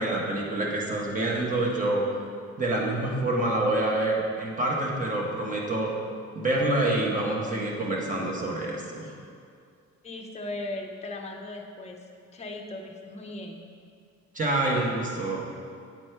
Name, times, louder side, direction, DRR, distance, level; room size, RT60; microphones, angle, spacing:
voice 1, 0.0-2.0 2.6-5.9 6.3-9.1 14.3-15.5, right 2 dB, 25° right, -2 dB, 1.2 m, -27 dB
voice 2, 10.0-12.0 12.3-13.6, left 2 dB, 20° left, 1 dB, 0.7 m, -37 dB
9.2 x 4.2 x 4.5 m, 2.2 s
cardioid pair, 140°, 29 cm